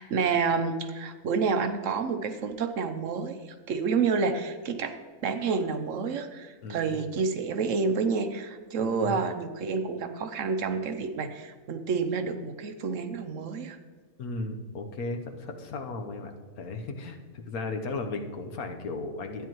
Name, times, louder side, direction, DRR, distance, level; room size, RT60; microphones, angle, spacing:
voice 1, 0.0-3.4 3.7-13.8, right 5 dB, 65° right, 8 dB, 1.1 m, -29 dB
voice 2, 8.8-9.2 14.2-19.5, left 3 dB, 90° left, 5 dB, 1.5 m, -35 dB
13.0 x 9.4 x 3.0 m, 1.5 s
omnidirectional pair, 1.5 m